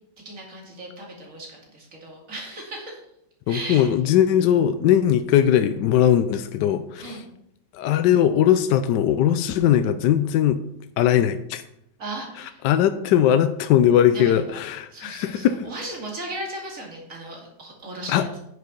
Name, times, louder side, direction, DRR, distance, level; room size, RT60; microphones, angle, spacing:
voice 1, 0.2-3.0 3.5-3.9 7.0-7.3 12.0-12.6 14.1-14.6 14.9-18.4, right 1 dB, 45° right, -1 dB, 2.8 m, -36 dB
voice 2, 3.5-7.2 7.7-10.6 11.0-11.6 12.6-15.6 18.1-18.2, left 10 dB, 75° left, 10 dB, 1.1 m, -19 dB
9.4 x 6.6 x 5.3 m, 0.78 s
omnidirectional pair, 2.1 m